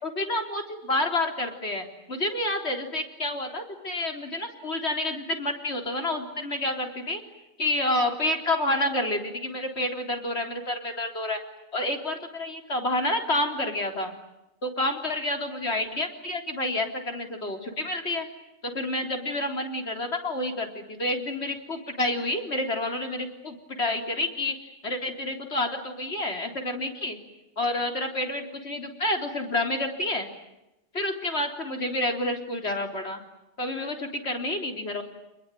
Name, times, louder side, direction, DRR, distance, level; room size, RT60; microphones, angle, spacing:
voice 1, 0.0-7.2 7.6-11.4 11.7-14.2 14.6-18.3 18.6-24.6 24.8-27.2 27.6-30.3 30.9-33.2 33.6-35.0, left 1 dB, 50° left, 4 dB, 4.1 m, -29 dB
29.0 x 21.5 x 9.2 m, 0.93 s
omnidirectional pair, 1.4 m